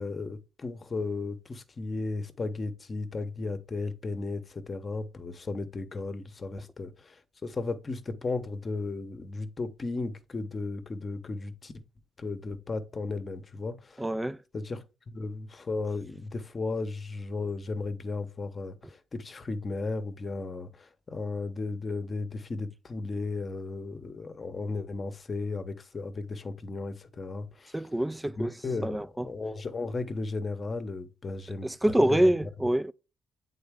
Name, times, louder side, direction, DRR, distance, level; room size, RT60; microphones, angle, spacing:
voice 1, 0.0-7.1 7.4-11.7 12.2-14.0 14.5-14.8 15.1-27.8 28.4-31.7 32.0-32.3, left 3 dB, 35° left, 0.8 m, -35 dB
voice 2, 14.0-14.4 27.7-28.5 28.8-29.3 31.6-32.9, right 1 dB, 10° right, 0.3 m, -26 dB
7.9 x 3.9 x 3.5 m
cardioid pair, 90°, 0 cm